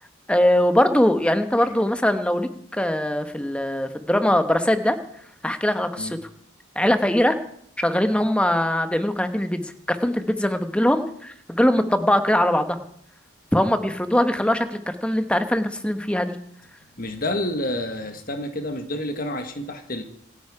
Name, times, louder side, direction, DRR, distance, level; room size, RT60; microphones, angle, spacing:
voice 1, 0.3-2.5 2.8-5.0 5.4-6.2 6.8-7.4 7.8-12.8 13.5-16.4, left 1 dB, 5° left, 8 dB, 1.1 m, -21 dB
voice 2, 17.0-20.0, left 1 dB, 45° left, 6 dB, 1.5 m, -29 dB
27.0 x 9.1 x 4.9 m, 0.66 s
head